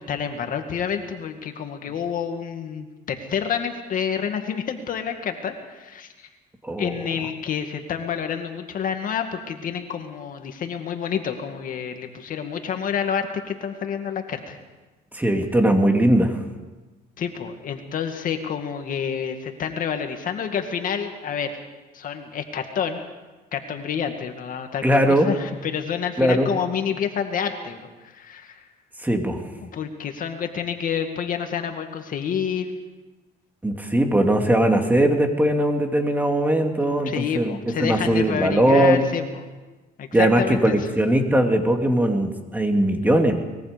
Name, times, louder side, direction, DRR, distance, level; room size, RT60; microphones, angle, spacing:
voice 1, 0.0-6.1 6.8-14.6 17.2-21.5 21.9-23.0 23.5-28.6 29.6-32.8 37.0-39.2 40.0-40.8, left 7 dB, 55° left, 5 dB, 2.2 m, -28 dB
voice 2, 6.6-7.1 15.1-16.4 24.8-25.3 26.2-26.5 29.0-29.4 33.6-39.1 40.1-43.4, right 1 dB, 10° right, 4 dB, 2.4 m, -20 dB
24.0 x 21.5 x 5.2 m, 1.2 s
cardioid pair, 110°, 17 cm